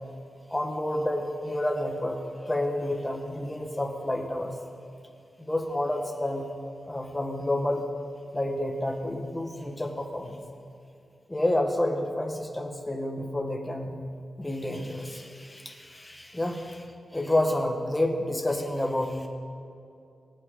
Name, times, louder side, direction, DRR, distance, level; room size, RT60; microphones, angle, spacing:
voice 1, 0.5-2.2 2.4-4.5 5.4-6.4 6.8-7.8 8.3-10.4 11.3-14.0 14.4-16.9 17.1-19.3, left 1 dB, 10° left, 2 dB, 1.4 m, -29 dB
23.5 x 8.4 x 3.8 m, 2.5 s
wide cardioid pair, 150°, 0 cm